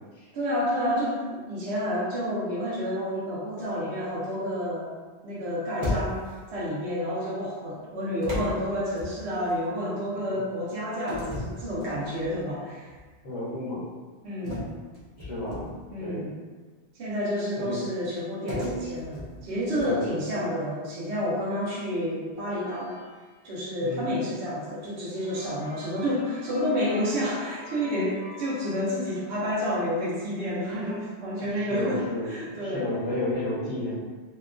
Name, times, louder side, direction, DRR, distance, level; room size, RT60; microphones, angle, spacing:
voice 1, 0.3-4.9 5.2-12.9 14.2-14.7 15.9-16.3 16.9-23.0 23.4-32.8, equal, 75° right, -7 dB, 0.9 m, -29 dB
sound 1, 5.8-6.5 8.2-9.6 11.1-12.4 12.9-13.1 14.4-15.9 18.5-20.1, left 1 dB, 40° right, 0.8 m, -35 dB
voice 2, 7.8-8.3 10.2-10.4 13.2-13.9 15.2-16.3 17.6-17.8 19.8-20.1 23.8-24.2 31.5-33.9, left 1 dB, 35° left, -7 dB, 0.7 m, -33 dB
sound 2, 22.4-24.0 24.5-24.6 25.0-29.5, left 1 dB, 15° right, 0.3 m, -46 dB
2.8 x 2.1 x 2.4 m, 1.4 s
omnidirectional pair, 1.1 m